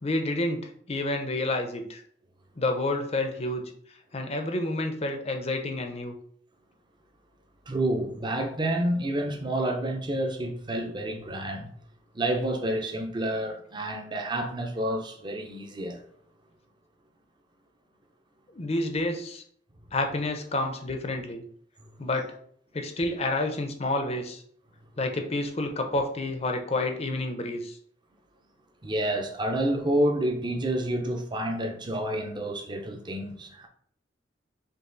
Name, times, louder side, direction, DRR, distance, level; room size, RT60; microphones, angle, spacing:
voice 1, 0.0-2.0 2.6-3.7 4.1-6.1 18.5-19.4 19.9-21.4 22.0-22.3 22.7-24.4 25.0-27.8, left 2 dB, 35° left, 0.6 m, -29 dB
voice 2, 7.7-11.8 12.1-16.0 21.8-21.9 28.8-33.7, right 1 dB, 25° right, 0.7 m, -29 dB
5.4 x 2.5 x 3.9 m
head